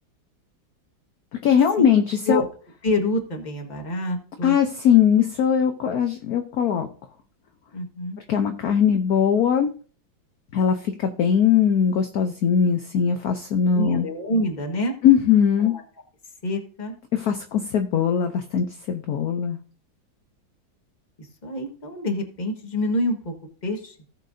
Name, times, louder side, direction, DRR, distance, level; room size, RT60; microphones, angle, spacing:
voice 1, 1.4-2.4 4.4-6.9 8.3-9.7 10.5-14.1 15.0-15.7 17.1-19.6, left 8 dB, 60° left, 6 dB, 1.1 m, -20 dB
voice 2, 2.8-4.6 7.7-8.2 13.6-15.0 15.6-15.8 16.4-16.9 21.2-23.3 23.6-24.0, left 1 dB, 25° left, 3 dB, 1.5 m, -27 dB
17.5 x 6.6 x 2.7 m, 0.40 s
omnidirectional pair, 2.2 m